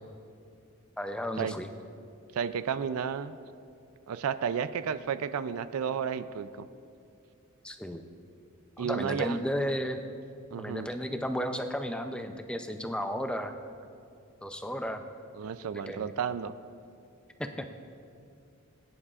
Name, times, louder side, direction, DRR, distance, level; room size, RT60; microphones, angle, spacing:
voice 1, 1.0-1.7 7.6-8.0 8.8-10.0 10.6-13.5 14.4-15.0 15.7-16.1 17.4-17.7, equal, 5° left, 6 dB, 0.4 m, -33 dB
voice 2, 2.3-3.3 4.1-6.7 8.8-9.4 10.5-10.9 15.3-16.5, right 7 dB, 75° right, 13 dB, 0.4 m, -32 dB
19.5 x 9.9 x 2.4 m, 2.5 s
head